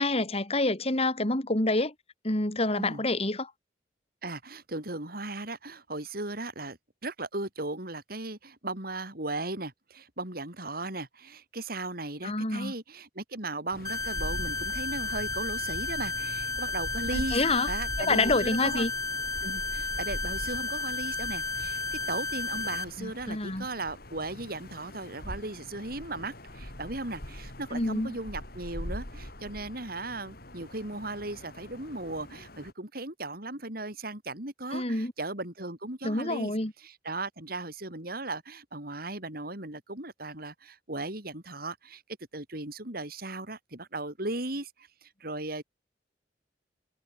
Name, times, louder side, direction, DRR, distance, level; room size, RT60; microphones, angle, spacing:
voice 1, 0.0-1.9 2.2-3.5 12.2-12.7 17.1-17.7 18.0-18.9 23.0-23.7 27.7-28.1 34.7-35.1 36.0-36.7, left 2 dB, 35° left, 3.7 m, -27 dB
voice 2, 4.2-17.4 17.7-18.9 19.4-36.5 36.8-42.0 42.3-45.6, right 2 dB, 55° right, 6.2 m, -37 dB
sound 1, 13.7-32.7, left 1 dB, 60° left, 6.8 m, -42 dB
sound 2, 13.8-22.8, left 3 dB, 20° left, 4.8 m, -33 dB
head